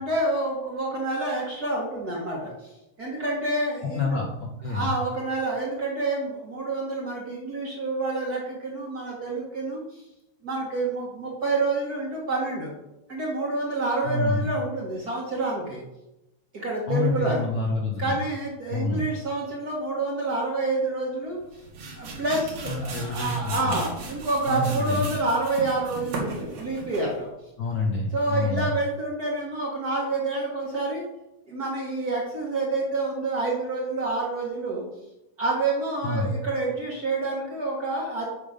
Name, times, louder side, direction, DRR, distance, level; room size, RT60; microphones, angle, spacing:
voice 1, 0.0-2.7 3.0-4.2 4.7-9.8 10.4-12.7 13.1-15.8 16.5-17.4 18.0-21.4 21.9-27.3 28.1-31.0 31.5-34.8 35.4-38.3, right 2 dB, 40° right, -3 dB, 1.7 m, -28 dB
voice 2, 3.9-5.0 14.0-14.4 16.9-18.1 18.7-19.1 22.6-23.7 24.5-25.1 27.6-28.7 36.0-36.3, left 3 dB, 55° left, -1 dB, 1.5 m, -27 dB
sound 1, 21.4-27.2, right 3 dB, 80° right, 3.3 m, -36 dB
8.7 x 6.1 x 5.1 m, 0.93 s
omnidirectional pair, 3.3 m